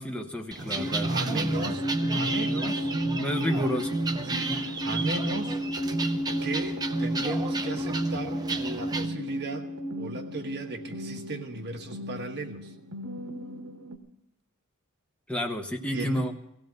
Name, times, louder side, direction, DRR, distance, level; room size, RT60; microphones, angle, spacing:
voice 1, 0.0-1.8 2.5-2.8 3.2-4.0 4.4-4.6 15.3-16.3, equal, 5° left, 2 dB, 1.0 m, -31 dB
sound 1, 0.5-9.1, right 3 dB, 20° right, 0.7 m, -35 dB
sound 2, 0.6-14.0, right 1 dB, 70° right, 1.4 m, -32 dB
voice 2, 0.7-2.9 3.5-3.8 4.2-5.6 6.4-9.7 10.0-12.7 15.9-16.2, right 2 dB, 50° right, 4 dB, 1.3 m, -35 dB
17.5 x 15.5 x 3.9 m, 0.79 s
head